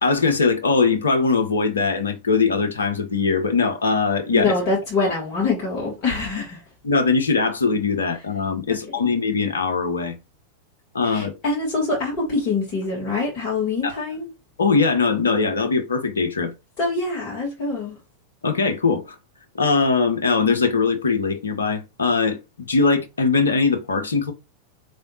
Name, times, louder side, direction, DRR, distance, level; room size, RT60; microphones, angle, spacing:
voice 1, 0.0-4.5 5.0-5.1 6.8-10.2 10.9-11.4 13.8-14.0 14.6-16.5 18.4-19.2 19.5-24.3, left 4 dB, 70° left, 0.8 m, -21 dB
voice 2, 4.3-6.6 8.7-9.1 11.0-14.3 16.8-18.0, left 3 dB, 40° left, 1.4 m, -25 dB
3.9 x 3.3 x 2.7 m
figure-of-eight pair, 90°, 0 cm